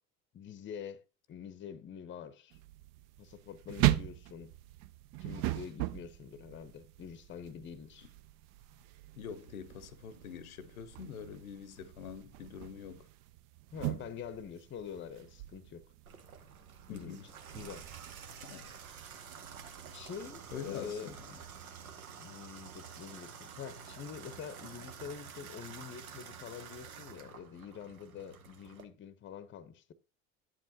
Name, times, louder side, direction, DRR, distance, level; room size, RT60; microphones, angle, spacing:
voice 1, 0.3-1.0 1.3-2.6 3.2-4.5 5.2-8.1 13.7-15.8 16.9-17.2 17.5-17.9 19.9-21.1 22.2-29.9, left 7 dB, 30° left, 0.7 m, -46 dB
sound 1, 2.5-21.6, right 16 dB, 50° right, 0.5 m, -40 dB
voice 2, 9.2-13.1 16.9-17.3 18.5-18.7 20.5-21.3, left 7 dB, 80° left, 0.8 m, -45 dB
Water tap faucet / Bathtub (filling or washing), 16.0-28.8, right 6 dB, 85° right, 0.8 m, -49 dB
8.8 x 7.5 x 2.7 m
hypercardioid pair, 65°, 42 cm